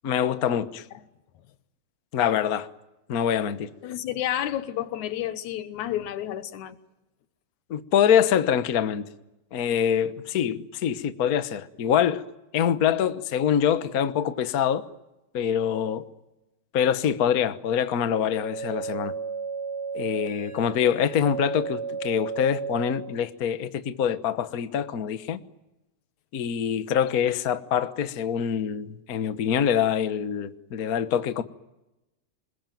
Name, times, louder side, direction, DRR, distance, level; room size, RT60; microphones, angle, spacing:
voice 1, 0.0-0.8 2.1-2.7 3.1-3.7 7.7-9.1 9.5-12.2 12.5-14.8 15.3-16.1 16.7-19.1 19.9-25.4 26.3-31.4, left 8 dB, 65° left, 0.9 m, -25 dB
voice 2, 3.8-6.8, left 12 dB, 85° left, 2.6 m, -30 dB
sound 1, 18.3-23.2, right 5 dB, 40° right, 2.1 m, -34 dB
28.0 x 21.0 x 9.2 m
omnidirectional pair, 3.3 m